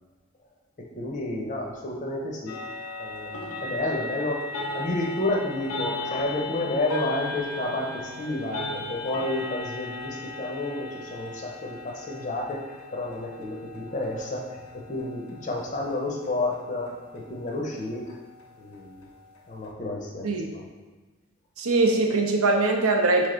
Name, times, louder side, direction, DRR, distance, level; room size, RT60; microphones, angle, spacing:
voice 1, 0.8-2.6 3.0-4.5 4.7-14.6 14.9-18.2 18.6-19.1 19.5-20.3 20.5-20.6, left 2 dB, 35° left, -1 dB, 0.6 m, -30 dB
sound 1, 2.5-19.7, left 2 dB, 90° left, 0.6 m, -38 dB
voice 2, 21.6-23.3, right 3 dB, 80° right, 2 dB, 0.6 m, -22 dB
3.5 x 3.3 x 3.8 m, 1.3 s
head